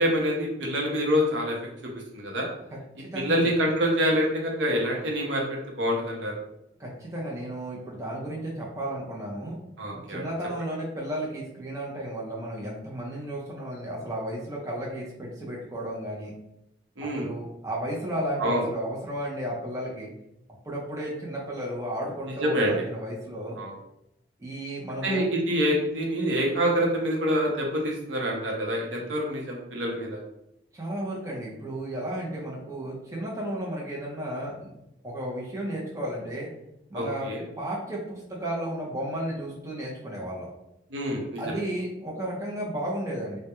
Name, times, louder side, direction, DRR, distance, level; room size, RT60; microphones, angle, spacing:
voice 1, 0.0-1.6 2.1-2.5 3.1-6.3 9.8-10.3 17.0-17.3 18.4-18.6 22.4-22.8 23.6-23.7 25.0-30.2 36.9-37.4 40.9-41.4, equal, 70° right, -1 dB, 0.6 m, -26 dB
voice 2, 3.0-3.5 6.8-9.6 10.1-16.3 17.0-20.1 20.6-23.6 24.4-25.2 30.7-34.7 35.0-36.5 36.9-37.3 37.6-40.5 41.4-43.4, right 1 dB, 15° right, -5 dB, 0.5 m, -33 dB
2.3 x 2.0 x 2.9 m, 0.84 s
head